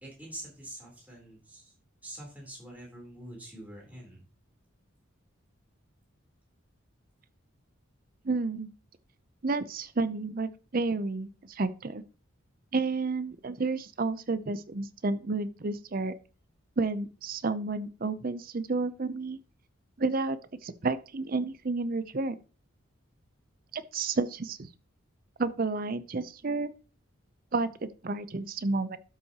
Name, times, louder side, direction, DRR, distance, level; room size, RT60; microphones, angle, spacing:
voice 1, 0.0-1.7 2.0-4.2, right 1 dB, 10° right, -3 dB, 3.6 m, -45 dB
voice 2, 8.2-8.7 9.4-12.0 12.7-16.1 16.8-19.4 20.0-22.4 23.7-24.7 25.4-26.7 27.5-27.7 28.0-29.0, right 3 dB, 45° right, 13 dB, 0.6 m, -31 dB
12.5 x 5.7 x 2.9 m, 0.36 s
head